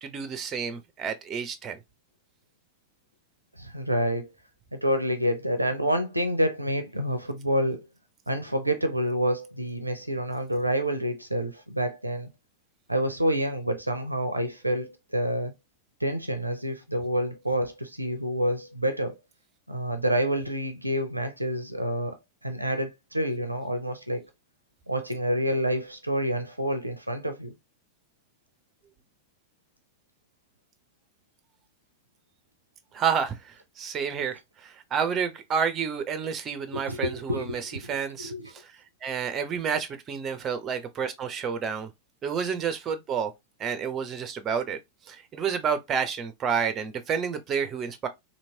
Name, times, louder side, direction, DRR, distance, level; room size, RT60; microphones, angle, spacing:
voice 1, 0.0-1.8 32.9-38.7 39.0-41.9 42.2-43.3 43.6-44.8 45.1-48.1, right 7 dB, 25° right, 0.5 m, -30 dB
voice 2, 3.6-4.3 4.7-7.9 8.3-12.3 12.9-15.5 16.0-19.1 19.7-22.2 22.4-24.3 24.9-27.5 36.9-38.5, equal, 85° right, 0.5 m, -28 dB
3.0 x 2.8 x 2.7 m
figure-of-eight pair, 90°, 0 cm